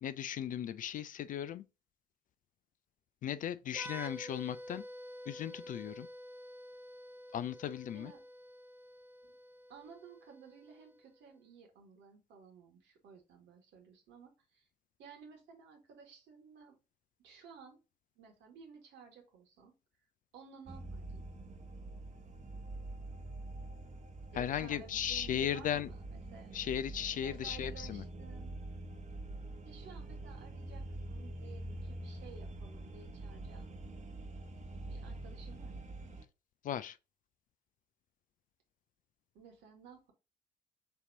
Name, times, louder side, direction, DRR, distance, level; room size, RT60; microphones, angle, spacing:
voice 1, 0.0-1.7 3.2-4.8 5.3-6.1 7.3-8.1 24.3-25.9 26.5-28.0 36.6-37.0, left 10 dB, 40° left, 0.4 m, -36 dB
sound 1, 3.7-11.2, equal, 10° right, 0.8 m, -50 dB
voice 2, 9.7-14.7 15.0-16.8 17.2-17.8 18.1-19.7 20.3-21.2 24.3-26.6 27.2-28.6 29.6-33.7 34.8-35.9 39.3-40.1, right 6 dB, 60° right, 1.6 m, -55 dB
sound 2, 20.7-36.3, right 2 dB, 35° right, 1.0 m, -45 dB
6.8 x 2.9 x 2.7 m
figure-of-eight pair, 45°, 21 cm